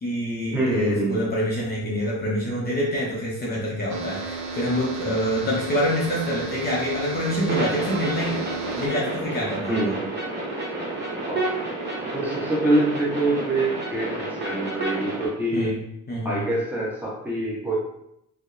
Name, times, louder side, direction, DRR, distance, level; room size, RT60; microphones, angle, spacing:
voice 1, 0.0-8.4 8.8-9.9 15.5-15.8 16.1-16.4, equal, 30° left, -5 dB, 0.6 m, -26 dB
voice 2, 0.5-1.2 9.7-10.0 11.3-11.4 12.1-15.8 16.2-17.7, right 2 dB, 5° right, -6 dB, 0.9 m, -25 dB
sound 1, 3.9-8.9, right 4 dB, 65° right, 0.5 m, -33 dB
sound 2, 7.5-15.3, right 2 dB, 35° right, 0.9 m, -30 dB
2.7 x 2.0 x 2.4 m, 0.79 s
cardioid pair, 90°, 30 cm